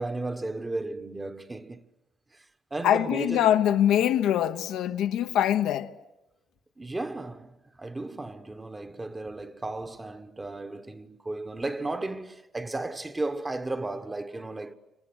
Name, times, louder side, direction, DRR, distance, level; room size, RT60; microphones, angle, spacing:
voice 1, 0.0-1.8 2.7-3.5 6.8-14.7, right 2 dB, 20° right, 1.3 m, -34 dB
voice 2, 2.8-5.9, left 11 dB, 85° left, 1.0 m, -23 dB
28.5 x 26.0 x 8.0 m
cardioid pair, 90°, 0 cm